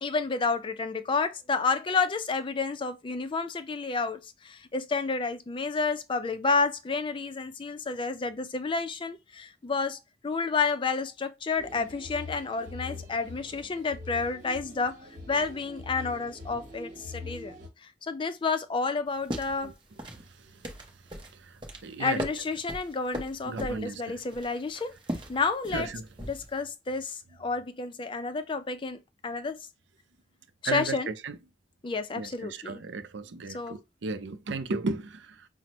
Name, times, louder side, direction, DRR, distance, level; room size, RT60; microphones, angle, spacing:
voice 1, 0.0-15.0 15.3-17.5 17.8-19.7 22.0-24.9 25.3-25.9 26.2-29.7 30.6-31.2 31.8-32.8 33.5-33.8, left 4 dB, 25° left, 0.4 m, -30 dB
sound 1, 11.6-17.7, left 2 dB, 45° right, 1.3 m, -43 dB
sound 2, 19.1-26.6, equal, 25° right, 0.9 m, -40 dB
voice 2, 21.8-22.2 23.4-24.1 25.7-26.0 30.6-31.4 32.1-35.5, right 3 dB, 75° right, 0.5 m, -35 dB
5.9 x 2.0 x 3.0 m
head